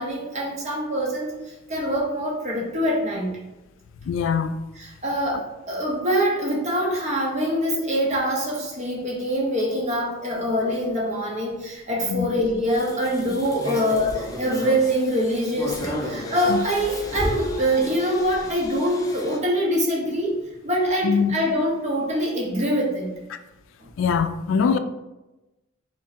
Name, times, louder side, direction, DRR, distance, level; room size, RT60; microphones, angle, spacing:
voice 1, 0.0-1.3 1.7-3.3 4.8-20.3 20.6-23.1 23.8-23.9, equal, 40° right, 0.9 m, -24 dB
voice 2, 4.0-4.6 12.1-12.3 16.5-16.6 21.0-21.3 23.3-23.4 24.0-24.8, left 6 dB, 80° left, 0.3 m, -22 dB
sound 1, 12.7-19.4, left 1 dB, 20° left, 0.5 m, -33 dB
3.6 x 2.6 x 4.2 m
head